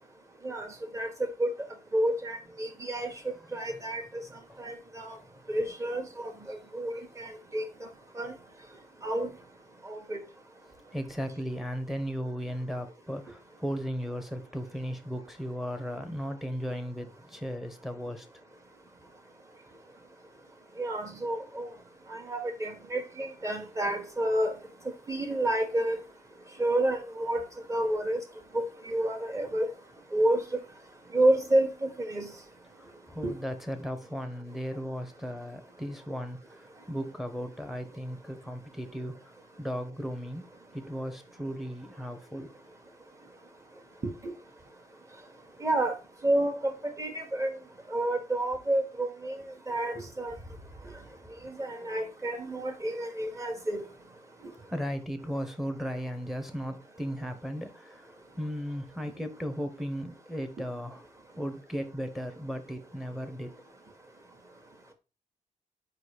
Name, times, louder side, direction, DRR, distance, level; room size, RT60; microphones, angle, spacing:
voice 1, 0.9-1.5 1.9-3.1 3.5-4.2 4.6-5.2 5.5-7.7 8.2-8.3 9.0-9.3 9.9-10.2 20.8-21.7 22.1-24.5 25.1-26.0 26.6-27.4 27.7-28.2 28.5-29.7 30.1-30.4 31.1-32.3 33.2-33.3 44.0-44.3 45.6-45.9 46.2-47.5 47.9-50.3 51.4-53.8, right 1 dB, 20° right, 1.3 m, -29 dB
voice 2, 10.9-18.3 33.1-39.3 39.6-42.5 54.7-61.0 61.4-63.5, equal, ahead, 0.9 m, -36 dB
5.1 x 3.9 x 4.9 m
wide cardioid pair, 140°, 14 cm